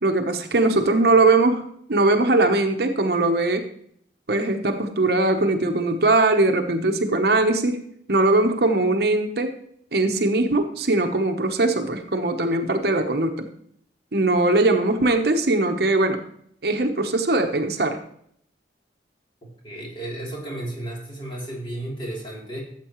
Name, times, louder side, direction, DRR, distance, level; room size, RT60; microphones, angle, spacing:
voice 1, 0.0-3.7 4.3-7.8 8.1-9.6 9.9-13.5 14.1-16.2 16.6-18.0, right 2 dB, 60° right, 6 dB, 0.9 m, -20 dB
voice 2, 19.4-22.6, right 1 dB, 30° left, -3 dB, 3.1 m, -33 dB
13.5 x 7.6 x 3.0 m, 0.67 s
head